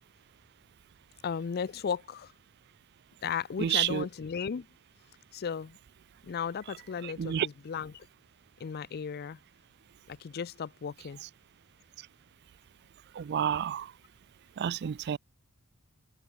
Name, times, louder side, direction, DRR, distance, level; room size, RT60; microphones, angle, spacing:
voice 1, 1.2-2.3 3.2-4.7 5.3-5.8 6.2-8.1 8.6-9.4 10.1-11.2, left 6 dB, 45° left, 0.4 m, -35 dB
voice 2, 3.6-4.1 7.0-7.5 13.1-13.9 14.6-15.2, right 9 dB, 50° right, 0.3 m, -30 dB
head